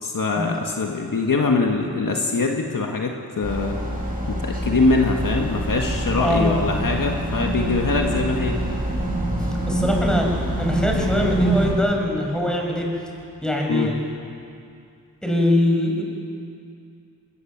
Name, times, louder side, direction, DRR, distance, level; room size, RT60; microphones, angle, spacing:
voice 1, 0.0-3.8 4.3-8.6 13.7-13.9, left 3 dB, 60° left, 2 dB, 1.8 m, -23 dB
sound 1, 3.4-11.7, right 1 dB, 25° right, 5.8 m, -25 dB
sound 2, 4.2-14.2, left 1 dB, 80° left, 4.3 m, -40 dB
voice 2, 6.2-6.8 9.2-9.3 9.7-10.3 10.6-12.9 13.4-13.9 15.2-16.0, left 1 dB, ahead, -1 dB, 5.8 m, -22 dB
20.5 x 19.0 x 7.5 m, 2.5 s
cardioid pair, 55°, 37 cm